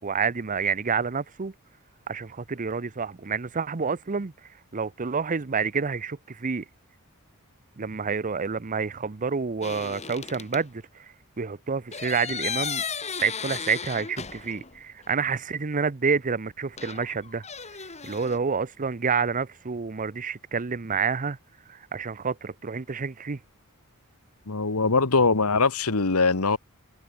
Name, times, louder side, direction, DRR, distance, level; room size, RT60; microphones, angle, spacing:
voice 1, 0.0-1.5 2.1-6.6 7.8-12.8 13.2-17.4 18.0-21.4 21.7-23.4, right 5 dB, 35° right, 0.7 m, -28 dB
sound 1, 9.6-10.6 11.9-14.8 15.0-15.1 16.8-18.4, left 6 dB, 30° left, 3.4 m, -35 dB
voice 2, 24.5-26.6, left 4 dB, 75° left, 1.5 m, -22 dB
head